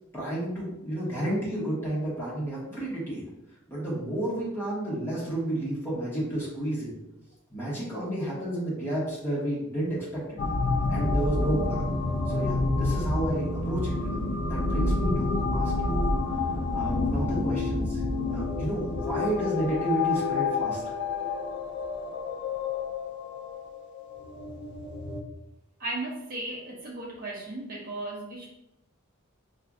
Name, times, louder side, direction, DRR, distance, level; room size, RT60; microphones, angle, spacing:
voice 1, 0.1-3.3 3.7-7.0 7.5-10.4 10.9-11.9 12.3-16.1 16.7-18.0 18.3-20.9, right 1 dB, 10° left, -8 dB, 1.3 m, -31 dB
sound 1, 10.4-25.2, left 3 dB, 50° left, 0.5 m, -28 dB
voice 2, 25.8-28.5, right 2 dB, 40° right, -3 dB, 0.7 m, -35 dB
5.5 x 2.5 x 2.3 m, 0.89 s
head